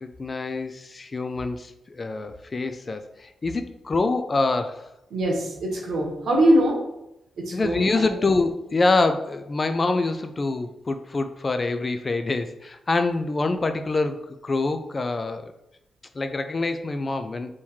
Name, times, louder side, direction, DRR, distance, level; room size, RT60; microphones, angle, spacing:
voice 1, 0.0-4.9 7.5-15.5 16.1-17.5, left 3 dB, 30° left, 8 dB, 0.3 m, -25 dB
voice 2, 5.1-6.8 7.4-8.1, right 1 dB, 75° right, -1 dB, 1.3 m, -22 dB
3.6 x 3.0 x 4.4 m, 0.85 s
wide cardioid pair, 140°, 0 cm